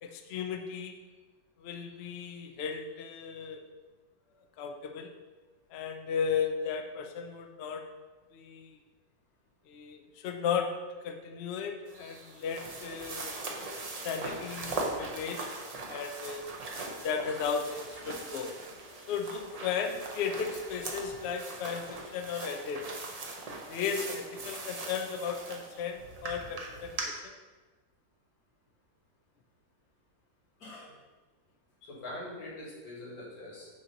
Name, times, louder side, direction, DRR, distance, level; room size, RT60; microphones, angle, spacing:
voice 1, 0.0-1.0 1.6-3.7 4.6-5.1 5.7-7.9 8.3-8.7 9.7-10.7 11.0-13.3 14.0-15.5 15.8-16.4 17.0-18.6 19.1-23.0 23.7-27.3, left 6 dB, 85° left, 5 dB, 0.5 m, -35 dB
sound 1, 11.9-27.0, right 2 dB, 65° right, 0.3 m, -40 dB
voice 2, 30.6-30.9 31.8-33.7, left 1 dB, 65° left, -5 dB, 2.1 m, -43 dB
6.3 x 2.9 x 5.2 m, 1.3 s
omnidirectional pair, 1.7 m